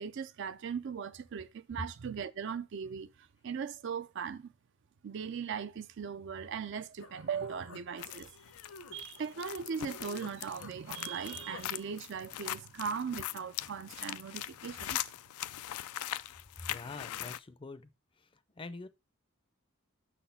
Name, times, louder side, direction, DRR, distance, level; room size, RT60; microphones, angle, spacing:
voice 1, 0.0-4.5 5.0-8.4 8.9-15.0, right 6 dB, 55° right, 0.4 m, -39 dB
Human voice, 6.6-6.7 7.0-10.3 10.6-11.7, left 3 dB, 70° left, 0.9 m, -51 dB
sound 1, 8.0-17.4, left 13 dB, 90° left, 0.4 m, -41 dB
voice 2, 16.7-17.8 18.6-18.9, left 3 dB, 25° left, 0.5 m, -44 dB
6.0 x 4.2 x 5.6 m
head